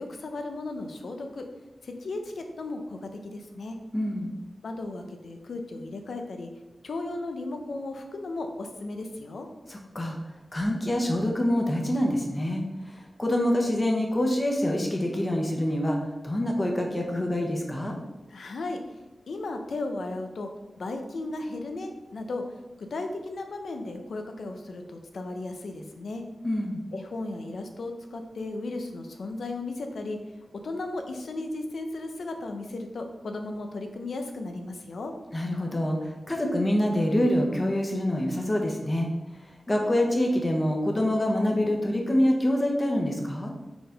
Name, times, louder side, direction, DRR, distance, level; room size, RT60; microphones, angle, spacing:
voice 1, 0.0-1.5 1.8-3.0 3.3-3.8 4.6-6.5 6.8-9.5 18.3-18.8 19.3-20.5 20.8-22.4 22.8-26.2 26.9-30.2 30.6-35.1, left 2 dB, 80° left, 5 dB, 0.8 m, -35 dB
voice 2, 3.9-4.4 9.7-10.2 10.5-16.0 16.2-17.9 26.4-26.8 35.3-39.1 39.7-43.5, left 1 dB, 25° left, 1 dB, 1.1 m, -26 dB
4.9 x 4.0 x 5.1 m, 1.1 s
wide cardioid pair, 125°, 0 cm